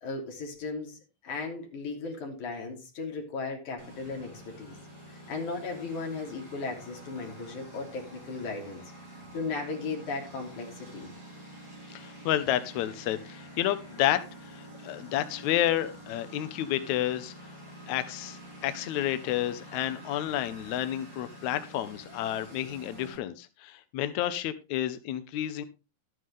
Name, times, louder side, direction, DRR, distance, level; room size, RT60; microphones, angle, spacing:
voice 1, 0.0-4.8 5.1-8.8 9.3-11.1, left 3 dB, 55° left, 1 dB, 4.4 m, -36 dB
Engine, 3.8-23.2, right 1 dB, 5° right, 6.4 m, -48 dB
voice 2, 11.9-17.3 17.9-25.6, left 12 dB, 75° left, 11 dB, 1.7 m, -30 dB
12.5 x 9.6 x 3.7 m, 0.29 s
omnidirectional pair, 4.4 m